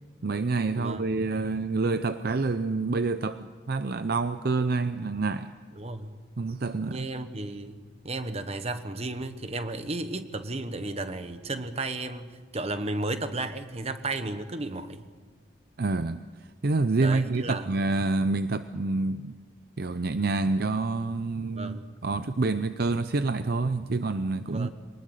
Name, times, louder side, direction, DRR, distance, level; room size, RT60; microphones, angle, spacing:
voice 1, 0.2-5.5 6.4-7.1 15.8-16.2 16.6-19.4 19.8-24.7, right 3 dB, 50° right, 11 dB, 0.6 m, -27 dB
voice 2, 5.8-6.1 6.9-15.0 17.0-17.7 21.5-21.9 24.5-24.7, right 2 dB, 30° right, 10 dB, 1.2 m, -34 dB
24.0 x 19.5 x 6.6 m, 1.5 s
head